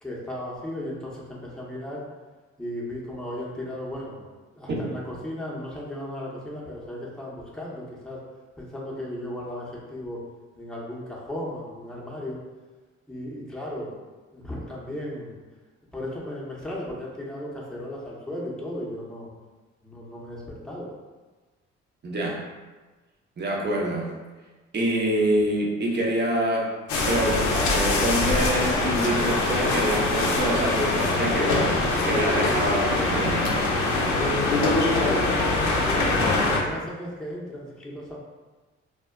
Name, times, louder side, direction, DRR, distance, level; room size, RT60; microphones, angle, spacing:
voice 1, 0.0-2.0 2.6-4.3 4.5-8.2 8.6-10.2 10.5-12.4 13.1-14.0 14.3-15.3 15.9-19.3 19.8-20.9 34.2-38.2, left 1 dB, ahead, -5 dB, 0.8 m, -35 dB
voice 2, 22.0-22.4 23.4-24.1 24.7-26.7 27.1-33.5, right 1 dB, 35° right, -2 dB, 0.8 m, -26 dB
sound 1, 26.9-36.6, left 2 dB, 75° left, 0.5 m, -23 dB
2.1 x 2.1 x 3.6 m, 1.3 s
supercardioid pair, 55°, 29 cm